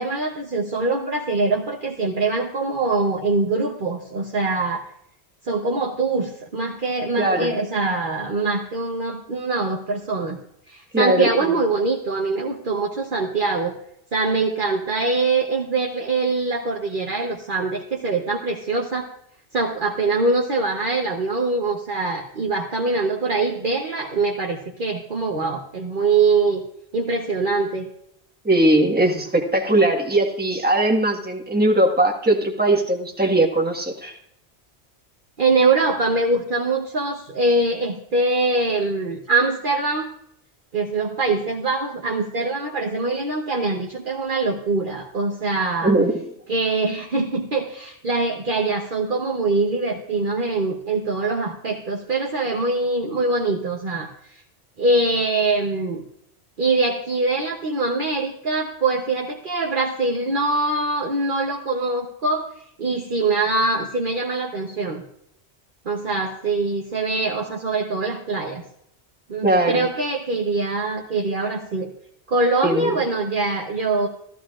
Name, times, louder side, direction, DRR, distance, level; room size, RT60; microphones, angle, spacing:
voice 1, 0.0-4.9 5.4-10.4 10.7-13.7 14.1-19.1 19.5-26.6 26.9-27.9 35.4-40.1 40.7-45.9 46.5-54.4 54.8-56.0 56.6-65.0 65.8-68.6 69.3-71.9 72.3-74.1, right 3 dB, 50° right, 0 dB, 1.1 m, -23 dB
voice 2, 7.2-7.5 10.9-11.5 28.4-34.1 45.8-46.2 69.4-69.9 72.6-73.0, right 1 dB, 10° right, 1 dB, 1.5 m, -20 dB
14.5 x 14.5 x 2.5 m, 0.73 s
omnidirectional pair, 1.1 m